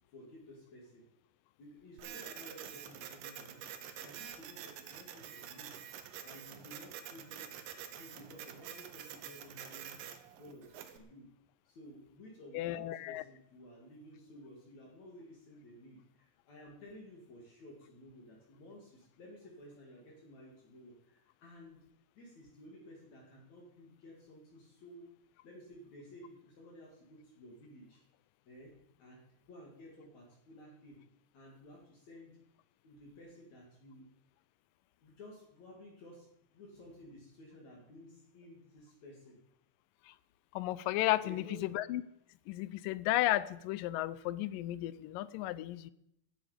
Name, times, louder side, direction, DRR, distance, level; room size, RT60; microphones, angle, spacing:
voice 1, 0.1-1.0 1.6-3.6 4.0-5.7 6.2-7.5 8.0-10.0 10.4-11.3 11.7-21.8 22.2-25.1 25.4-28.0 28.5-31.0 31.3-32.4 32.8-34.1 35.0-39.4 41.2-41.7, left 1 dB, 55° left, -2 dB, 3.6 m, -54 dB
Printer, 2.0-11.0, right 9 dB, 85° right, 2.8 m, -47 dB
voice 2, 12.5-13.2 40.1-40.2 40.5-42.0 42.5-45.9, left 15 dB, 85° left, 17 dB, 2.3 m, -34 dB
17.0 x 11.5 x 5.1 m, 0.79 s
omnidirectional pair, 3.9 m